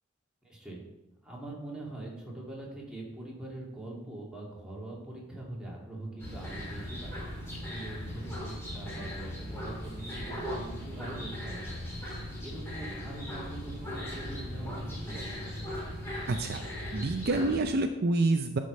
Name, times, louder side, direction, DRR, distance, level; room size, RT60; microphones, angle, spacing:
voice 1, 0.4-0.8 1.2-11.8 12.4-15.7, right 2 dB, 5° right, -4 dB, 2.6 m, -43 dB
sound 1, 6.2-17.6, left 1 dB, 15° left, 3.1 m, -38 dB
voice 2, 16.3-16.6 16.9-18.6, right 2 dB, 50° right, 7 dB, 0.5 m, -27 dB
11.5 x 5.0 x 5.4 m, 0.97 s
head